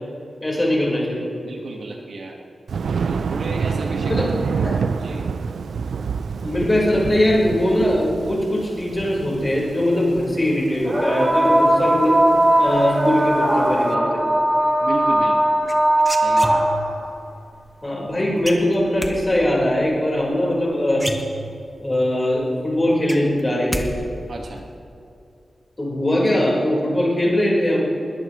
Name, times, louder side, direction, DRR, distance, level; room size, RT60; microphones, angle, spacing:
voice 1, 0.4-1.3 4.1-4.3 4.6-4.8 6.4-12.2 12.6-14.2 17.8-21.0 21.8-23.9 25.8-27.9, left 1 dB, 20° left, -4 dB, 4.3 m, -21 dB
voice 2, 1.4-2.4 3.0-4.1 4.4-4.6 5.0-5.2 14.8-15.6 16.1-16.6 24.3-24.6, right 2 dB, 65° right, 0 dB, 1.5 m, -32 dB
Thunder, 2.7-13.8, right 5 dB, 80° right, 0.4 m, -28 dB
sound 1, 8.7-8.8 10.8-17.0 18.5-18.6 19.4-19.5, right 1 dB, 25° right, 3.3 m, -19 dB
sound 2, 15.7-17.0 18.4-19.1 20.5-20.6 20.9-21.8 22.2-22.3 22.6-23.9 24.1-24.6, right 1 dB, 5° right, 1.1 m, -29 dB
20.5 x 18.5 x 3.1 m, 2.5 s
wide cardioid pair, 155°, 0 cm